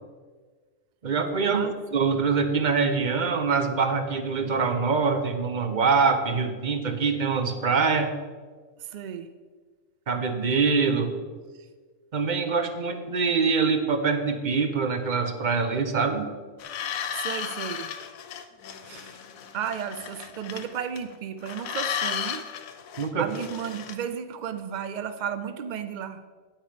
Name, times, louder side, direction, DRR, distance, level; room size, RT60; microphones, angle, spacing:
voice 1, 1.0-8.1 10.1-11.1 12.1-16.3 23.0-23.3, right 5 dB, 40° right, 6 dB, 0.9 m, -24 dB
voice 2, 8.8-9.3 11.5-11.7 17.1-17.9 18.8-19.2 19.5-22.4 23.2-26.2, right 8 dB, 70° right, 9 dB, 0.4 m, -34 dB
sound 1, 16.6-21.1 21.4-23.9, left 8 dB, 90° left, 1.1 m, -34 dB
8.9 x 8.8 x 5.1 m, 1.4 s
omnidirectional pair, 1.4 m